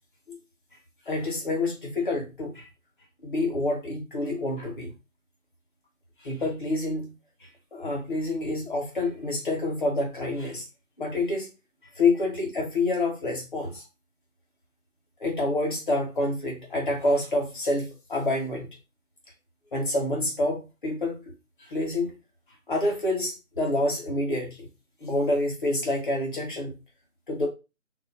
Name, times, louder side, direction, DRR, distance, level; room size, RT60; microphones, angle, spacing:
voice 1, 1.1-2.6 3.2-4.9 6.2-7.1 7.7-10.6 11.0-11.5 12.0-13.8 15.2-18.7 19.7-21.2 21.6-22.1 22.7-24.7 25.0-26.7 27.3-27.5, left 2 dB, 35° left, -1 dB, 1.3 m, -27 dB
3.3 x 3.0 x 4.1 m, 0.27 s
figure-of-eight pair, 175°, 41 cm